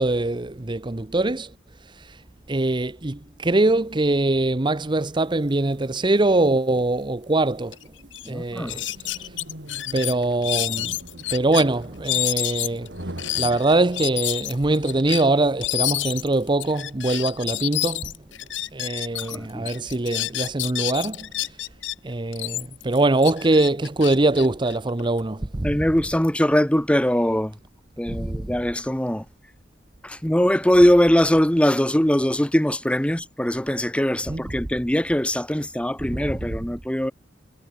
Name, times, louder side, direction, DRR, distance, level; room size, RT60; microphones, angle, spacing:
voice 1, 0.0-1.5 1.9-2.2 2.5-7.8 8.3-9.3 9.9-12.9 13.4-18.1 18.7-21.6 22.0-25.9 28.1-28.5 34.3-34.5 36.0-36.6, right 2 dB, 25° right, 0.8 m, -23 dB
sound 1, 5.1-14.5, right 1 dB, 65° right, 4.1 m, -43 dB
sound 2, 7.7-7.8 8.1-8.3 8.7-11.6 12.0-19.4 19.6-21.9 22.3-25.2, left 16 dB, 75° left, 0.8 m, -29 dB
voice 2, 8.3-8.8 19.2-19.7 25.6-27.5 28.0-29.2 30.0-37.1, equal, 5° left, 1.1 m, -21 dB
head